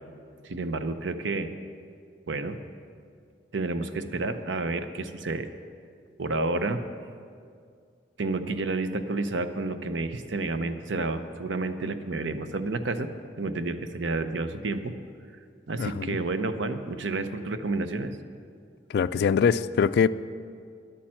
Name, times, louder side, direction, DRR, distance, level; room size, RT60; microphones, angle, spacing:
voice 1, 0.4-1.5 2.3-2.6 3.5-5.5 6.2-6.8 8.2-13.1 13.4-14.9 15.7-18.2, right 3 dB, 85° right, 10 dB, 0.7 m, -30 dB
voice 2, 15.8-16.2 18.9-20.1, left 6 dB, 60° left, 16 dB, 0.3 m, -23 dB
10.5 x 8.7 x 7.6 m, 2.2 s
head